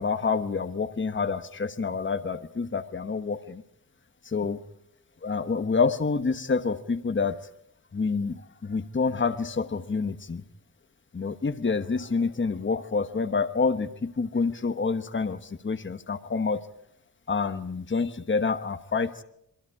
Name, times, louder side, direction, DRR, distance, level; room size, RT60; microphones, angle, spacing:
voice 1, 0.0-3.6 4.2-4.6 5.2-7.4 7.9-10.4 11.1-16.6 17.3-19.2, left 4 dB, 30° left, 9 dB, 1.2 m, -27 dB
28.5 x 23.0 x 4.8 m, 0.75 s
wide cardioid pair, 110°, 37 cm